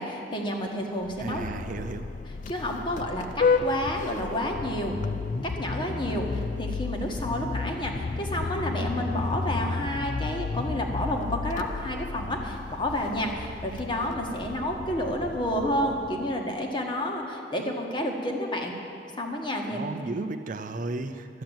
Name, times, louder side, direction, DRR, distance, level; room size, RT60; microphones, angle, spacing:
voice 1, 0.0-1.5 2.5-4.9 5.4-18.7 19.2-19.9, left 1 dB, 30° left, 1 dB, 1.5 m, -30 dB
Vehicle horn car horn honking, 1.0-16.4, left 4 dB, 45° left, 0.4 m, -32 dB
voice 2, 1.2-2.1 19.7-21.3, right 2 dB, 45° right, 8 dB, 0.5 m, -34 dB
12.0 x 7.7 x 8.8 m, 2.5 s
head